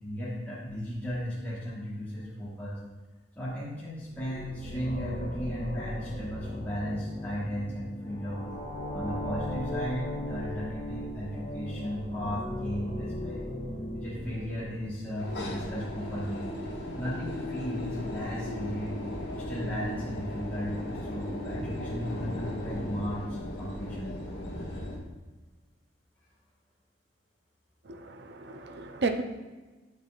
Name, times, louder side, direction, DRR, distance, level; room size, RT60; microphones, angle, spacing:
voice 1, 0.0-2.8 3.4-8.5 8.9-13.5 13.9-16.5 16.9-19.0 19.4-24.2, equal, 10° left, -9 dB, 1.3 m, -35 dB
sound 1, 4.1-15.2, equal, 35° left, 1.6 m, -37 dB
sound 2, 15.2-25.0, left 1 dB, 65° left, 1.7 m, -37 dB
voice 2, 27.9-29.2, right 3 dB, 60° right, 6 dB, 0.6 m, -33 dB
9.1 x 6.6 x 2.4 m, 1.2 s
head